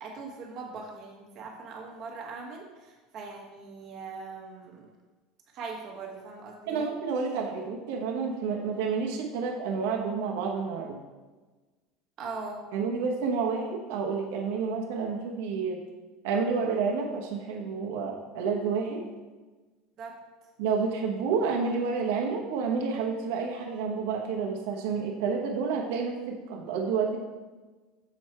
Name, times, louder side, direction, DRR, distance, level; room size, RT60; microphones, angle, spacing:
voice 1, 0.0-4.9 5.5-6.9 12.2-12.6 20.0-20.2, right 4 dB, 40° right, 0 dB, 1.3 m, -41 dB
voice 2, 6.7-11.0 12.7-15.8 16.2-19.1 20.6-27.2, right 5 dB, 75° right, 0 dB, 1.0 m, -29 dB
7.1 x 4.7 x 4.4 m, 1.3 s
cardioid pair, 160°, 0 cm